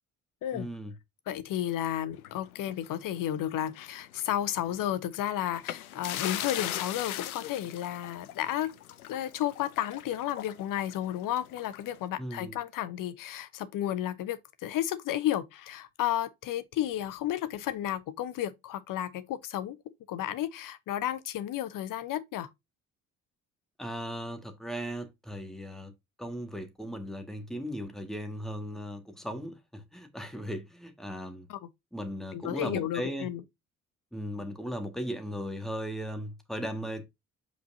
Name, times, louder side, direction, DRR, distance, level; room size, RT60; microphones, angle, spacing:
voice 1, 0.5-0.9 12.2-12.5 23.8-25.9 26.2-31.5 31.9-33.3 34.1-37.0, equal, ahead, 1.9 m, -37 dB
voice 2, 1.3-8.7 9.1-19.8 20.1-22.5 31.5-31.6 32.3-33.4, left 12 dB, 50° left, 1.0 m, -32 dB
sound 1, 2.2-3.8 4.1-4.3 5.5-12.0, left 12 dB, 80° left, 0.6 m, -39 dB
7.9 x 5.2 x 2.7 m
figure-of-eight pair, 50°, 43 cm